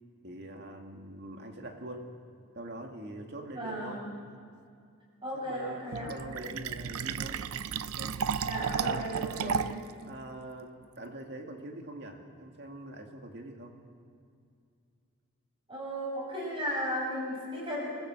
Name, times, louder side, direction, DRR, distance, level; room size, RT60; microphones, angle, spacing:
voice 1, 0.2-2.1 2.5-4.0 5.3-7.4 7.8-8.1 8.8-9.7 10.0-13.8, right 1 dB, 50° right, 3 dB, 2.2 m, -43 dB
voice 2, 3.5-4.1 5.2-6.1 8.4-9.8 15.7-17.9, equal, 25° right, -3 dB, 7.2 m, -35 dB
Fill (with liquid), 5.9-9.9, right 6 dB, 75° right, 0.5 m, -33 dB
25.0 x 15.0 x 7.8 m, 2.3 s
head